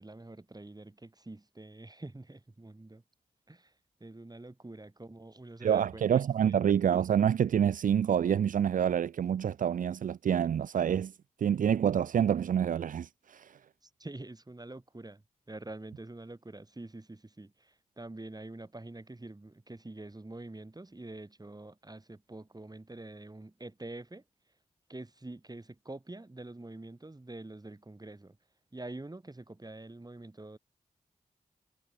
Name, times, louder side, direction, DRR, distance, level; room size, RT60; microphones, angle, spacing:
voice 1, 0.0-3.0 3.5-3.7 4.0-6.6 13.8-24.2 24.9-28.4 28.7-30.6, right 2 dB, 25° right, 4.9 m, -46 dB
voice 2, 5.6-11.1 11.4-13.6, right 9 dB, 70° right, 0.4 m, -27 dB
cardioid pair, 40°, 14 cm